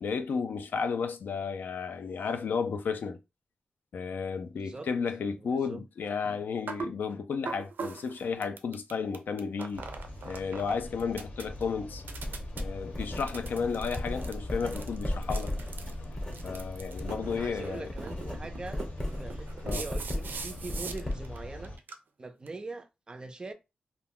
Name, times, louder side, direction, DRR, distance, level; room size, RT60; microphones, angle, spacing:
voice 1, 0.0-3.2 3.9-9.8 10.3-12.0 12.5-15.5 16.4-17.9 19.6-19.8, left 5 dB, 80° left, 0.4 m, -33 dB
voice 2, 5.4-5.8 11.6-11.7 13.9-14.0 17.3-18.9 19.2-21.7 22.2-23.5, right 3 dB, 25° right, 0.3 m, -42 dB
sound 1, 6.7-6.9 7.5-10.7 11.0-11.6 12.0-12.6 13.2-21.4 21.6-21.9 22.5-22.6, right 5 dB, 90° right, 0.4 m, -41 dB
sound 2, 9.7-21.8, left 1 dB, 60° left, 0.7 m, -44 dB
Writing, 12.2-17.5 17.8-21.5, left 1 dB, 15° left, 0.7 m, -36 dB
2.4 x 2.2 x 3.5 m
wide cardioid pair, 175°, 3 cm